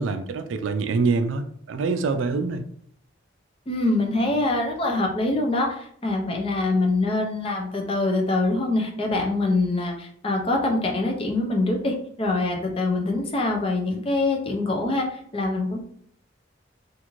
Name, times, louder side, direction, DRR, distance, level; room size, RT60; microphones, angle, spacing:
voice 1, 0.0-2.6, right 4 dB, 85° right, 8 dB, 0.3 m, -25 dB
voice 2, 3.7-15.8, left 2 dB, 30° left, 2 dB, 0.4 m, -24 dB
2.5 x 2.4 x 3.0 m, 0.64 s
head